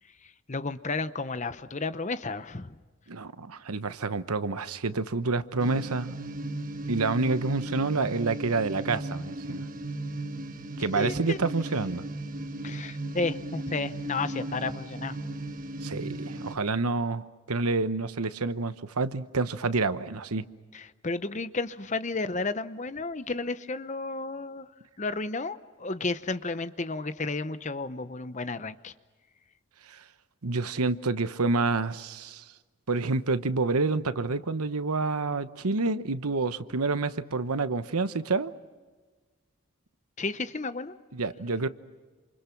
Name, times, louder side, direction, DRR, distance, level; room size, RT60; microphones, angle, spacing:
voice 1, 0.5-2.7 10.9-11.4 12.6-15.2 20.7-24.7 25.0-28.9 40.2-40.9, left 3 dB, 30° left, 12 dB, 0.8 m, -32 dB
voice 2, 3.1-6.1 6.9-9.6 10.8-12.0 15.8-20.5 29.9-30.0 30.4-32.4 32.9-38.5 41.1-41.7, right 3 dB, 85° right, 12 dB, 1.0 m, -28 dB
sound 1, 5.6-16.6, right 2 dB, 40° right, 1.2 m, -36 dB
28.5 x 28.0 x 5.9 m, 1.4 s
head